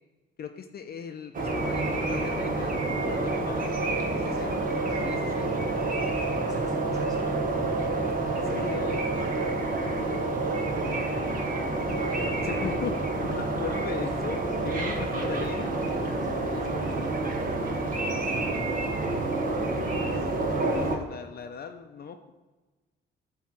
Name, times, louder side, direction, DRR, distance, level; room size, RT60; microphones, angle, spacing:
voice 1, 0.4-3.7 4.1-4.5 5.0-5.6 8.3-9.0 11.9-12.1 12.4-15.7 19.7-20.3 20.6-22.3, left 6 dB, 50° left, 6 dB, 0.6 m, -38 dB
sound 1, 1.3-21.0, right 2 dB, 45° right, 1.3 m, -28 dB
voice 2, 3.8-4.6 4.9-5.2 6.4-7.3 11.6-12.7 14.7-17.8, right 1 dB, 20° right, -4 dB, 2.5 m, -43 dB
9.3 x 3.1 x 6.0 m, 1.2 s
cardioid pair, 90°, 20 cm